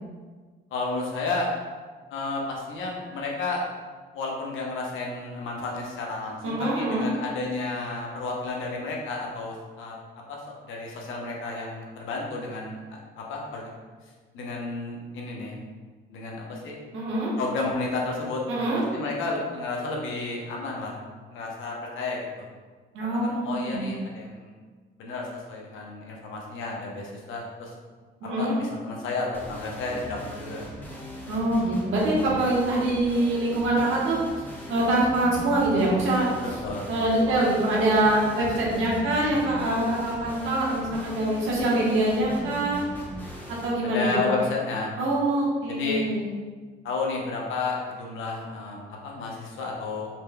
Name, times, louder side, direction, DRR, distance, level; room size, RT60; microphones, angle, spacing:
voice 1, 0.7-1.5 2.1-3.6 4.1-9.9 10.3-13.7 14.3-15.5 16.1-16.8 17.4-18.4 18.7-21.0 21.3-22.4 23.0-24.5 25.0-27.7 28.4-30.6 36.4-36.9 43.8-44.9 45.7-46.0 46.8-50.1, left 3 dB, 80° left, -1 dB, 0.8 m, -32 dB
voice 2, 6.4-7.1 16.9-17.3 18.5-18.8 22.9-23.9 28.2-28.6 31.3-34.2 34.7-36.3 36.9-42.9 43.6-44.3 45.0-46.3, right 1 dB, 85° right, -5 dB, 1.1 m, -24 dB
sound 1, 29.3-43.7, equal, 10° left, 0.8 m, -39 dB
4.2 x 3.2 x 2.2 m, 1.4 s
cardioid pair, 90°, 20 cm